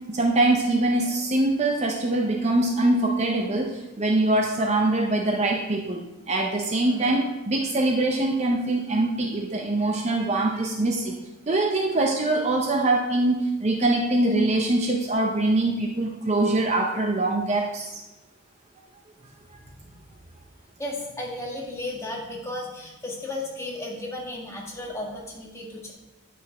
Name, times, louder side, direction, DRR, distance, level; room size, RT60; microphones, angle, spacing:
voice 1, 0.1-11.2 11.5-17.9 19.5-19.6, right 2 dB, 30° right, 2 dB, 0.6 m, -23 dB
voice 2, 20.8-25.9, left 1 dB, 15° left, -3 dB, 1.7 m, -34 dB
9.5 x 5.9 x 4.7 m, 1.0 s
head